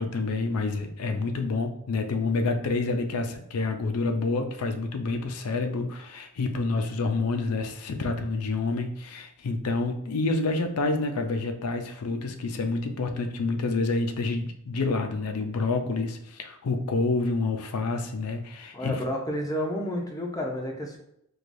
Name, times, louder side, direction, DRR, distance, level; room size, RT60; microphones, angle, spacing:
voice 1, 0.0-18.9, left 3 dB, 80° left, 6 dB, 0.5 m, -28 dB
voice 2, 18.7-21.0, equal, 15° left, 0 dB, 0.5 m, -30 dB
4.6 x 2.3 x 2.5 m, 0.76 s
head